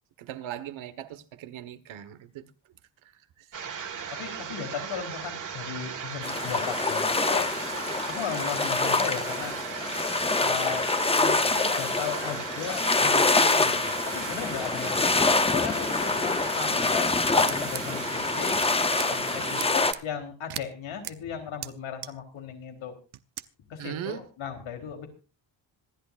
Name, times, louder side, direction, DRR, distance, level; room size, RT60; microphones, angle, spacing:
voice 1, 0.2-2.5 3.4-3.5 23.8-24.3, right 11 dB, 90° right, 1.5 m, -39 dB
sound 1, 3.5-19.7, right 7 dB, 40° right, 2.0 m, -37 dB
voice 2, 4.1-7.5 8.1-9.6 10.4-10.9 11.1-15.1 15.5-18.6 19.1-22.9 23.7-25.1, left 7 dB, 90° left, 3.8 m, -36 dB
sound 2, 6.2-19.9, left 3 dB, 15° left, 0.7 m, -26 dB
sound 3, 17.5-17.8 18.5-18.7 19.0-19.1 19.6-20.0 20.5-20.6 21.0-21.1 21.6-21.7 22.0-22.1 23.1-23.4, right 12 dB, 55° right, 0.8 m, -36 dB
26.0 x 11.5 x 2.5 m
cardioid pair, 165°, 46 cm